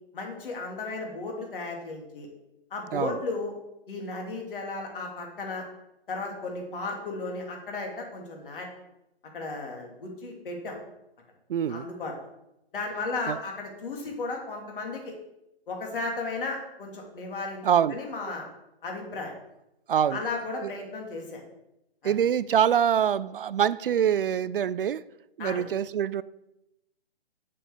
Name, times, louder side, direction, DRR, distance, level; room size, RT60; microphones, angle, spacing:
voice 1, 0.1-2.3 2.7-3.5 3.9-5.6 6.1-8.7 9.3-10.8 11.7-12.1 12.7-15.1 15.7-18.5 18.8-19.3 20.1-21.4 22.0-22.1 25.4-25.6, left 3 dB, 55° left, 3.0 m, -34 dB
voice 2, 11.5-11.8 13.3-13.4 17.6-18.0 19.9-20.2 20.6-20.7 22.0-25.0 25.4-26.2, right 9 dB, 55° right, 0.5 m, -25 dB
7.6 x 7.0 x 6.5 m
hypercardioid pair, 140°, 32 cm